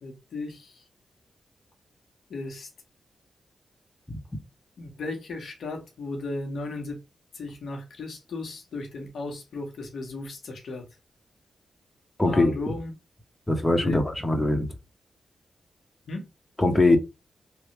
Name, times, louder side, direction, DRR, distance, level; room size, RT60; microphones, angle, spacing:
voice 1, 0.0-0.9 2.3-2.7 4.8-7.0 7.3-10.9 12.2-12.9 13.7-14.0 16.1-16.3, left 2 dB, 75° left, 1.1 m, -35 dB
voice 2, 12.2-12.6 13.5-14.7 16.6-17.0, left 2 dB, 20° left, 1.1 m, -21 dB
3.3 x 2.3 x 3.1 m
supercardioid pair, 40°, 0 cm